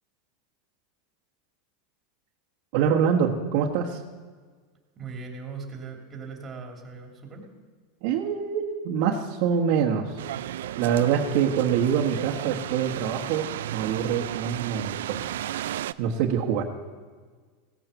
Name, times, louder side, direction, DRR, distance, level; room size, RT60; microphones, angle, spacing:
voice 1, 2.7-4.0 8.0-10.2 10.8-15.3 16.0-16.6, right 7 dB, 60° right, -2 dB, 1.4 m, -25 dB
voice 2, 5.0-7.4 11.3-11.4, right 4 dB, 20° right, 2 dB, 2.7 m, -39 dB
sound 1, 10.2-15.9, right 12 dB, 85° right, 0.4 m, -34 dB
16.5 x 8.9 x 7.0 m, 1.5 s
supercardioid pair, 145°, 0 cm